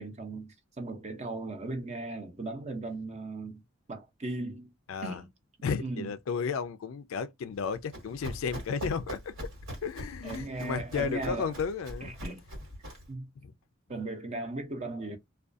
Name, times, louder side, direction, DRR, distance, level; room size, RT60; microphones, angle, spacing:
voice 1, 0.0-3.6 3.9-4.7 5.0-5.3 5.8-6.1 10.2-11.5 12.0-12.4 13.1-13.3 13.9-15.2, right 2 dB, 35° right, 0.6 m, -37 dB
voice 2, 4.9-5.2 5.6-9.3 9.8-12.1 13.4-13.5, left 5 dB, 75° left, 0.3 m, -33 dB
Run, 7.6-13.1, equal, 80° right, 1.3 m, -42 dB
2.3 x 2.3 x 2.5 m
head